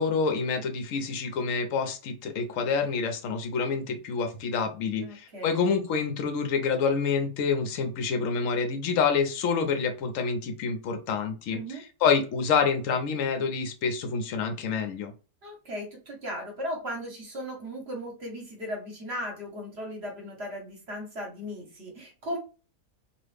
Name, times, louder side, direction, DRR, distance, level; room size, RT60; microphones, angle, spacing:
voice 1, 0.0-11.6 12.0-15.1, left 5 dB, 65° left, 6 dB, 0.8 m, -27 dB
voice 2, 5.0-5.6 11.5-11.8 15.4-22.4, equal, 45° right, 1 dB, 1.1 m, -37 dB
3.0 x 2.4 x 3.3 m, 0.33 s
omnidirectional pair, 1.9 m